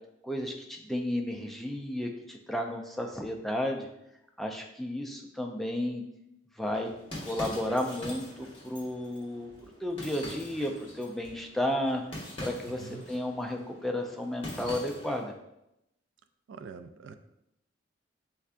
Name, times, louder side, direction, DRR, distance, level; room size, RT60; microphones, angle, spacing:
voice 1, 0.2-3.9 4.4-6.0 6.6-6.9 7.2-9.5 9.8-12.0 12.4-15.3, left 1 dB, ahead, 2 dB, 0.3 m, -33 dB
sound 1, 6.6-15.3, left 1 dB, 30° left, 1.4 m, -44 dB
voice 2, 12.7-13.1 16.5-17.2, right 5 dB, 80° right, 11 dB, 0.3 m, -45 dB
5.4 x 3.4 x 2.5 m, 0.85 s
head